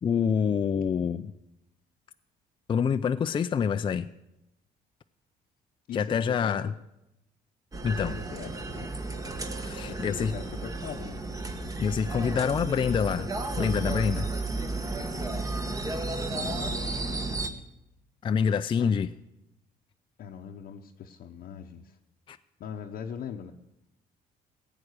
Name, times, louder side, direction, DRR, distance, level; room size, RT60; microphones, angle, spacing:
voice 1, 0.0-1.3 2.7-4.1 5.9-6.7 7.8-8.2 9.5-10.3 11.8-13.3 13.6-14.3 18.2-19.1 22.3-22.4, left 7 dB, 30° left, 9 dB, 0.4 m, -26 dB
voice 2, 5.9-6.6 7.8-8.9 9.9-11.2 16.3-17.4 18.8-18.9 20.2-22.0 22.6-23.5, left 7 dB, 60° left, 1 dB, 0.9 m, -41 dB
sound 1, 7.7-17.5, right 2 dB, 20° right, 1.1 m, -33 dB
16.0 x 8.7 x 6.5 m, 0.89 s
cardioid pair, 110°, 17 cm